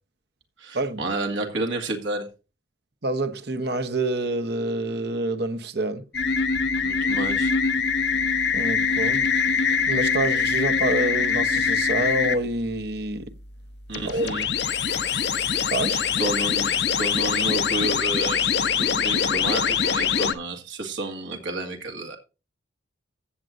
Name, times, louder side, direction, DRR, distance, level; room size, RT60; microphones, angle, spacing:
voice 1, 0.6-2.3 6.8-7.5 13.9-14.5 16.2-16.7 16.9-22.2, right 2 dB, 80° right, 2.1 m, -30 dB
voice 2, 3.0-6.0 8.5-9.2 9.9-13.4 14.0-14.3 15.7-16.0, right 2 dB, 55° right, 1.0 m, -27 dB
sound 1, 6.1-12.4 13.9-20.3, left 6 dB, 65° left, 0.9 m, -23 dB
15.5 x 7.6 x 2.6 m
head